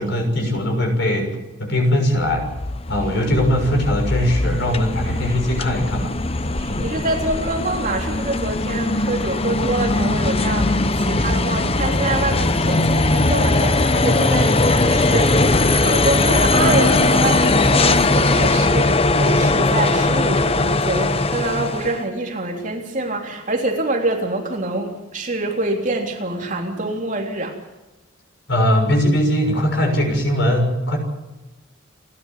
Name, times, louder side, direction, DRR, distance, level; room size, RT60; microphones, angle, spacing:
voice 1, 0.0-2.5 2.9-6.1 6.7-6.9 28.5-31.0, equal, 55° left, 4 dB, 6.7 m, -20 dB
sound 1, 2.2-22.0, left 2 dB, 30° left, 0.9 m, -19 dB
voice 2, 6.6-27.6, right 2 dB, 35° right, 2 dB, 3.5 m, -25 dB
29.5 x 12.0 x 9.2 m, 1.1 s
head